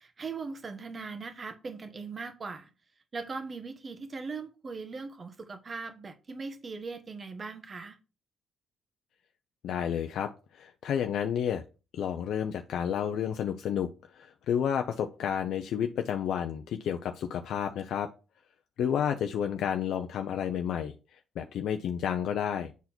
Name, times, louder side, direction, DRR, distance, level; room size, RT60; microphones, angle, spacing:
voice 1, 0.0-2.7 3.1-8.0 18.8-19.2, right 4 dB, 35° right, 1.3 m, -40 dB
voice 2, 9.6-11.6 11.9-13.9 14.1-18.1 18.8-22.7, left 8 dB, 75° left, 0.6 m, -31 dB
8.2 x 4.1 x 4.4 m
cardioid pair, 90°, 0 cm